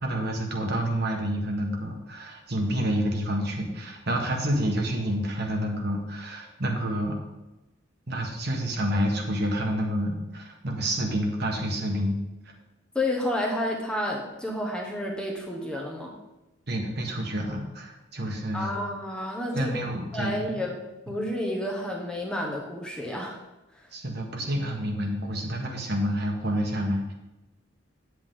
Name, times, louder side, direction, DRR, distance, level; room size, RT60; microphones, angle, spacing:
voice 1, 0.0-7.1 8.1-12.2 16.7-18.8 19.5-20.6 23.9-27.1, equal, 55° right, 1 dB, 1.6 m, -28 dB
voice 2, 12.9-16.1 18.5-19.7 20.1-20.8 21.1-23.4 23.7-23.9, left 1 dB, 5° left, -1 dB, 1.2 m, -30 dB
9.6 x 8.0 x 3.8 m, 1.0 s
head